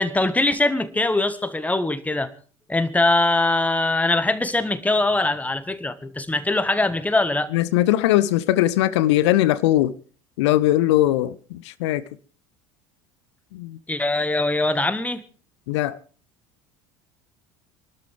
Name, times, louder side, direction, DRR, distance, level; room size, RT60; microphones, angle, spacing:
voice 1, 0.0-2.3 2.7-7.5 13.9-15.2, left 2 dB, 10° left, 1.6 m, -22 dB
voice 2, 7.5-9.9 10.4-12.0 13.5-13.8 15.7-16.0, left 14 dB, 60° left, 0.8 m, -20 dB
27.0 x 12.5 x 3.5 m
figure-of-eight pair, 70°, 16 cm